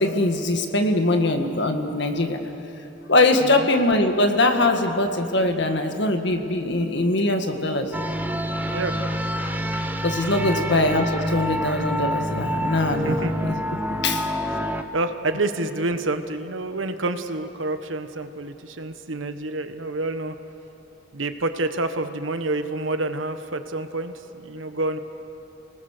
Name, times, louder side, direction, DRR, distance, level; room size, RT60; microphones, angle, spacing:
voice 1, 0.0-2.4 3.1-7.9 9.7-13.6 13.9-14.3, left 2 dB, 65° left, 5 dB, 1.9 m, -22 dB
sound 1, 7.9-14.8, equal, 10° right, 0.9 m, -27 dB
voice 2, 14.9-20.4 21.1-24.1 24.4-25.0, right 2 dB, 90° right, 9 dB, 1.3 m, -28 dB
29.5 x 19.5 x 6.7 m, 3.0 s
head